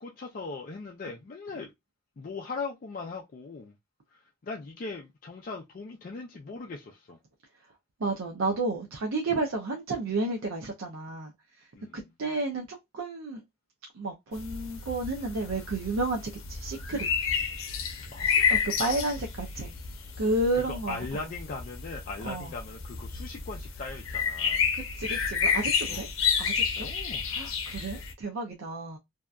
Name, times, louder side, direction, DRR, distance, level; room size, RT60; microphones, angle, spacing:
voice 1, 0.0-1.7 2.2-3.7 4.1-7.2 11.8-12.0 18.1-18.7 20.5-24.7 25.9-26.0 26.8-27.2, left 4 dB, 45° left, 0.4 m, -39 dB
voice 2, 7.5-13.4 13.9-17.1 18.2-19.7 20.2-21.3 22.2-22.5 24.7-26.1 26.4-26.9 27.3-29.0, right 2 dB, 80° right, 0.5 m, -32 dB
sound 1, 14.3-28.1, left 6 dB, 90° left, 0.6 m, -30 dB
2.7 x 2.4 x 2.2 m
head